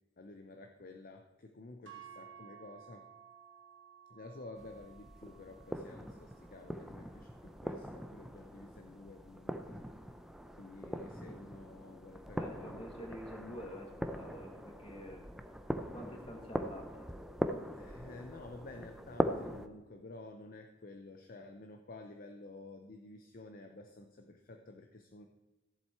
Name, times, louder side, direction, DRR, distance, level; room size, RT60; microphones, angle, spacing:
voice 1, 0.2-3.1 4.1-9.8 10.6-12.8 17.7-25.3, left 2 dB, 45° left, 5 dB, 0.7 m, -51 dB
sound 1, 1.9-10.1, right 8 dB, 75° right, 2.0 m, -58 dB
sound 2, 4.6-19.7, equal, ahead, 0.6 m, -41 dB
voice 2, 12.4-15.2 15.9-17.1, equal, 30° left, 2 dB, 2.0 m, -48 dB
14.0 x 7.8 x 4.5 m, 1.1 s
head